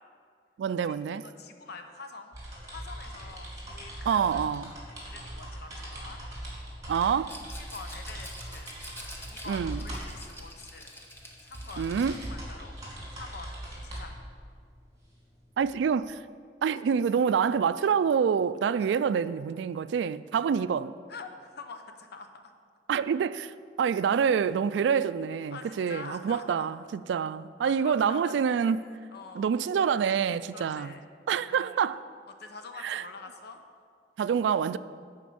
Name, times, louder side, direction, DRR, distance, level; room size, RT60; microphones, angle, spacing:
voice 1, 0.6-1.3 4.1-4.7 6.9-7.4 9.5-9.9 11.8-12.2 15.6-16.2 16.6-21.0 22.9-23.5 23.8-28.9 29.4-30.9 31.3-32.0 32.8-33.0 34.2-34.8, right 7 dB, 80° right, 0.3 m, -27 dB
voice 2, 1.2-2.3 2.7-4.4 5.1-6.2 7.7-8.7 9.3-10.9 11.4-12.7 13.1-14.2 18.8-18.9 21.1-22.5 25.5-26.7 27.6-28.3 28.6-29.5 30.5-31.0 31.4-31.8 32.4-33.6, left 4 dB, 65° left, 0.7 m, -45 dB
sound 1, 2.3-16.0, right 1 dB, 20° right, 2.8 m, -41 dB
Rattle, 7.2-12.3, left 1 dB, 15° left, 1.0 m, -47 dB
11.0 x 4.4 x 7.0 m
head